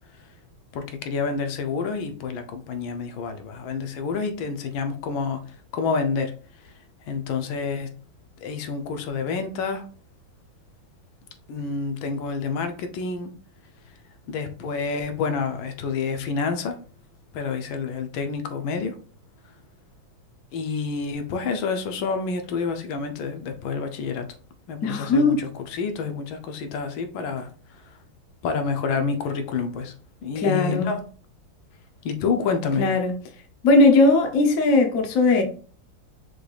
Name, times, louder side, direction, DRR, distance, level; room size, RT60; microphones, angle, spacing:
voice 1, 0.7-5.4 5.7-6.3 7.1-7.9 8.4-9.9 11.5-13.3 14.3-16.8 17.3-19.0 20.5-24.3 24.7-27.5 28.4-29.9 30.2-31.0 32.0-32.8, left 5 dB, 80° left, 1.4 m, -28 dB
voice 2, 24.8-25.5 30.3-30.9 32.8-33.1 33.6-35.4, left 2 dB, 60° left, 0.9 m, -18 dB
6.0 x 3.3 x 2.3 m
omnidirectional pair, 2.2 m